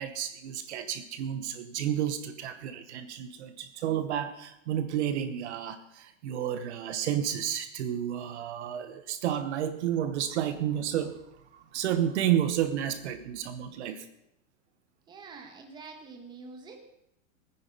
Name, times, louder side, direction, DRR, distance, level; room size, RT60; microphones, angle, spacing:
voice 1, 0.0-14.1, right 10 dB, 55° right, 10 dB, 1.1 m, -31 dB
voice 2, 15.1-16.8, right 4 dB, 10° right, 2 dB, 1.4 m, -46 dB
18.0 x 9.8 x 5.4 m, 0.82 s
supercardioid pair, 175°, 40 cm